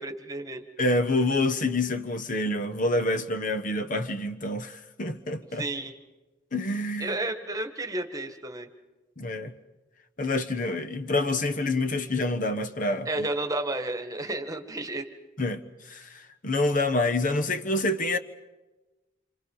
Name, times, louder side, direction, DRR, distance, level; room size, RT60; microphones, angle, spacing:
voice 1, 0.0-0.6 5.6-5.9 7.0-8.7 13.1-15.1, right 2 dB, 20° right, 1.8 m, -32 dB
voice 2, 0.8-5.6 6.5-7.2 9.2-9.5 10.2-13.1 15.4-15.6 15.9-18.2, left 2 dB, 45° left, 1.2 m, -27 dB
28.0 x 27.5 x 5.6 m
head